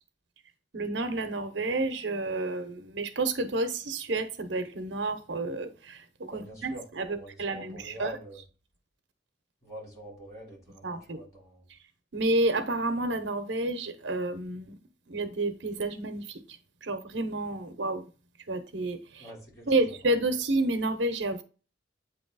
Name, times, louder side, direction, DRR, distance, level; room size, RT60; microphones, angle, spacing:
voice 1, 0.7-8.1 10.8-11.2 12.1-14.7 15.1-16.4 16.8-18.1 18.5-19.3 19.7-21.4, right 2 dB, 75° right, 0.8 m, -30 dB
voice 2, 6.3-8.4 9.6-11.6 19.2-20.1, equal, 15° left, 3.7 m, -46 dB
8.4 x 3.0 x 3.9 m
head